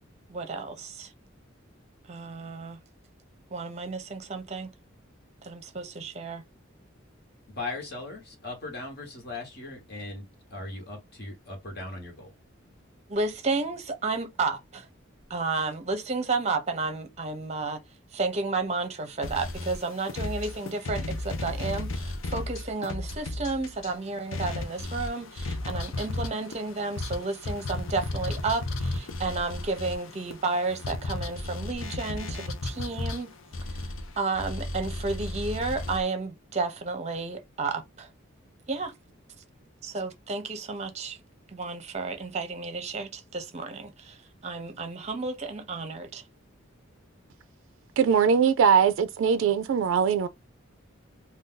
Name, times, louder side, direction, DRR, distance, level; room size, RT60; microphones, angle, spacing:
voice 1, 0.3-1.1 2.1-2.8 3.5-4.7 5.4-6.4 13.1-14.9 15.3-17.8 18.1-33.3 34.2-38.1 38.7-38.9 39.8-41.2 41.5-44.2 44.4-46.2, right 3 dB, 35° right, 0.6 m, -32 dB
voice 2, 7.5-10.2 10.5-12.3, left 2 dB, 50° left, 1.1 m, -38 dB
sound 1, 19.2-23.9 24.3-36.0, left 2 dB, 70° left, 0.5 m, -34 dB
voice 3, 48.0-50.3, right 7 dB, 70° right, 0.3 m, -21 dB
2.6 x 2.3 x 3.6 m
head